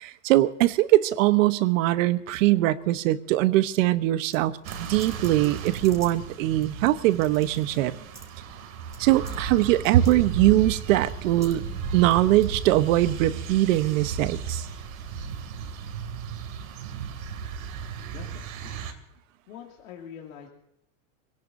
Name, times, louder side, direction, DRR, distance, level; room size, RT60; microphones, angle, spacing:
voice 1, 0.0-4.5 4.8-7.9 9.0-11.6 11.9-14.7, right 15 dB, 75° right, 12 dB, 1.1 m, -22 dB
sound 1, 4.3-6.2 6.6-6.7 7.1-7.8 8.1-8.3 8.9-9.0 9.2-9.4 9.8-10.2 10.9-11.6 11.9-12.5, right 3 dB, 5° right, 1.5 m, -48 dB
sound 2, 4.6-18.9, right 6 dB, 90° right, 2.7 m, -35 dB
voice 2, 18.0-18.8 19.5-20.5, left 8 dB, 85° left, -1 dB, 2.6 m, -44 dB
24.5 x 17.5 x 2.7 m, 0.79 s
supercardioid pair, 145°, 40 cm